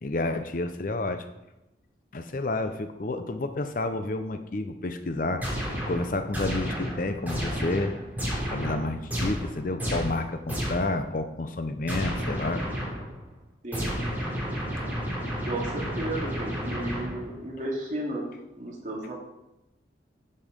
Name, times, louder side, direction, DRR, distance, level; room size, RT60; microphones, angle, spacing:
voice 1, 0.0-1.3 2.1-5.4 5.9-7.9 8.5-12.6, left 2 dB, 45° left, 9 dB, 0.6 m, -30 dB
sound 1, 5.4-11.0 11.9-13.2 13.7-17.4, equal, 10° right, 3.1 m, -32 dB
voice 2, 15.4-18.3 18.6-19.1, right 1 dB, 40° right, -2 dB, 2.3 m, -33 dB
11.0 x 5.6 x 5.2 m, 0.93 s
head